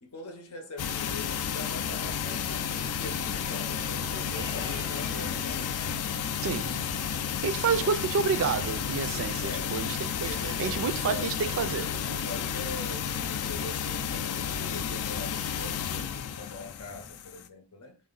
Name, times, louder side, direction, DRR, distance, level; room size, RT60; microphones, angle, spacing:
voice 1, 0.0-2.7 3.0-5.8 7.7-7.9 8.3-8.4 9.4-9.8 10.1-11.3 11.6-18.0, left 2 dB, 90° left, 0.8 m, -43 dB
sound 1, 0.8-17.5, left 8 dB, 75° left, 0.4 m, -32 dB
sound 2, 1.8-17.1, left 1 dB, 15° left, 0.7 m, -47 dB
voice 2, 6.4-6.9 7.4-11.9, right 6 dB, 65° right, 0.3 m, -29 dB
3.8 x 2.1 x 3.8 m
head